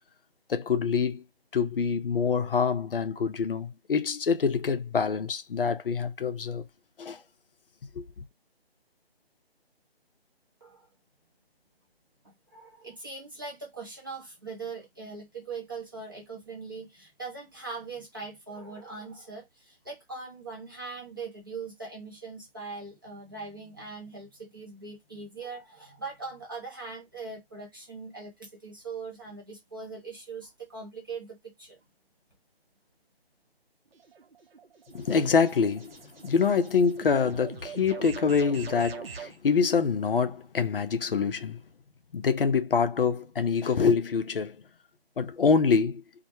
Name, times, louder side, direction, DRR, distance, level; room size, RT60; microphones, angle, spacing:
voice 1, 0.5-1.2 1.5-6.6 7.0-7.2 7.9-8.2 34.9-36.0 36.2-41.6 42.1-44.6 45.2-46.0, left 5 dB, 60° left, 0.5 m, -25 dB
voice 2, 12.2-31.8, right 4 dB, 20° right, 0.6 m, -41 dB
sound 1, 33.9-39.4, right 6 dB, 65° right, 0.6 m, -43 dB
2.1 x 2.1 x 2.8 m
figure-of-eight pair, 160°, 31 cm